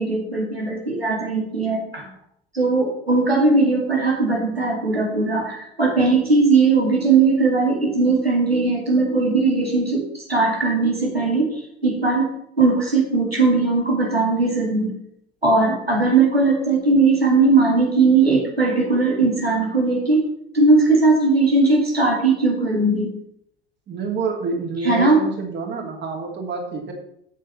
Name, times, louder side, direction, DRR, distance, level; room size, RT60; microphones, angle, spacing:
voice 1, 0.0-2.1 2.5-12.3 12.6-14.9 15.4-20.3 20.5-23.1 24.8-25.2, right 3 dB, 90° right, -1 dB, 2.2 m, -19 dB
voice 2, 23.9-26.9, right 4 dB, 35° right, 1 dB, 2.9 m, -27 dB
8.3 x 7.9 x 5.8 m, 0.73 s
figure-of-eight pair, 65°, 30 cm